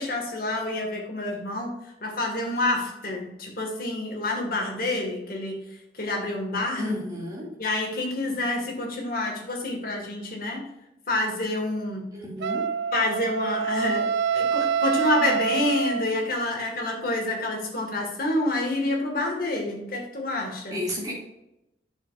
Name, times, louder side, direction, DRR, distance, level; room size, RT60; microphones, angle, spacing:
voice 1, 0.0-5.6 5.9-6.9 7.6-10.6 11.1-12.1 12.9-20.8, left 2 dB, 55° left, 0 dB, 2.0 m, -28 dB
voice 2, 6.8-7.5 12.1-12.7 20.7-21.1, left 1 dB, 20° right, -5 dB, 2.5 m, -32 dB
Wind instrument woodwind instrument, 12.4-16.4, right 7 dB, 75° right, 0.4 m, -26 dB
8.6 x 6.9 x 2.6 m, 0.89 s
head